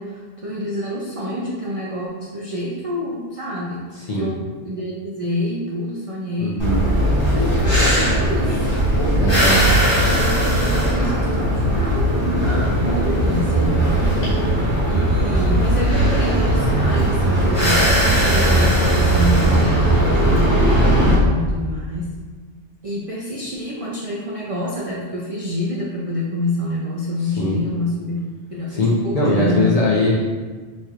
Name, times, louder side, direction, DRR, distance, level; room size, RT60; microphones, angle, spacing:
voice 1, 0.0-3.8 4.1-6.7 7.3-8.5 9.1-9.4 10.2-14.5 14.8-17.8 18.2-22.1 22.8-29.7, left 1 dB, 55° right, -5 dB, 0.3 m, -27 dB
voice 2, 3.9-4.3 6.4-6.8 9.1-9.8 27.4-27.6 28.7-30.1, left 1 dB, 45° left, -5 dB, 0.5 m, -20 dB
sound 1, 6.6-21.2, right 1 dB, 25° left, 1.3 m, -18 dB
4.3 x 3.0 x 2.4 m, 1.4 s
omnidirectional pair, 1.2 m